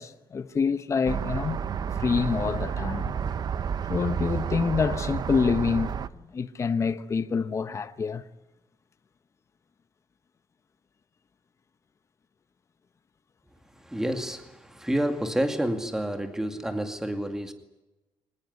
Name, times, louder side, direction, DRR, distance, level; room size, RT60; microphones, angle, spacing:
voice 1, 0.0-1.6 1.9-3.1 3.9-6.0 6.3-8.2, left 5 dB, 30° left, 1.1 m, -27 dB
sound 1, 1.1-6.1, right 7 dB, 45° right, 1.0 m, -30 dB
voice 2, 13.9-17.5, right 1 dB, 5° right, 2.3 m, -29 dB
25.0 x 19.5 x 9.5 m
cardioid pair, 135°, 9 cm